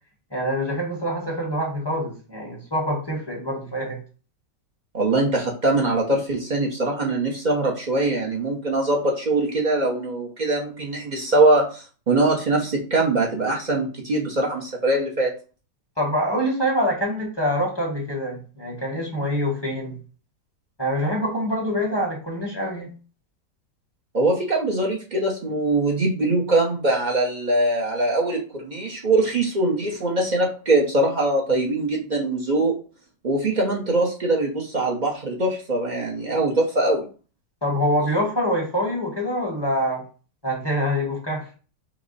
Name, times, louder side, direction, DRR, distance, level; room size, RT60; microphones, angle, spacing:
voice 1, 0.3-4.0 16.0-20.0 20.8-22.9 37.6-40.0 40.4-41.5, equal, 15° left, -2 dB, 1.1 m, -25 dB
voice 2, 4.9-15.3 24.1-32.7 33.2-37.1, right 2 dB, 45° right, -1 dB, 0.5 m, -22 dB
5.7 x 2.0 x 4.0 m, 0.36 s
omnidirectional pair, 1.9 m